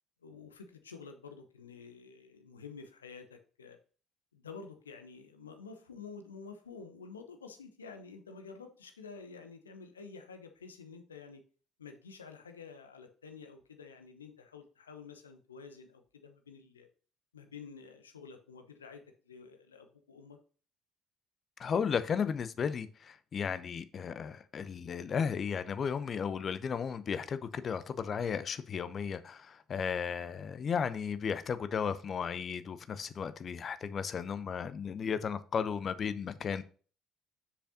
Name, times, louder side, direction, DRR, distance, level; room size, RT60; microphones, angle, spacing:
voice 1, 0.2-3.8 4.3-11.4 11.8-16.9 17.3-20.4, left 5 dB, 80° left, 0.8 m, -50 dB
voice 2, 21.6-36.6, left 6 dB, 40° left, 0.7 m, -34 dB
7.7 x 6.7 x 2.8 m
figure-of-eight pair, 55°, 0 cm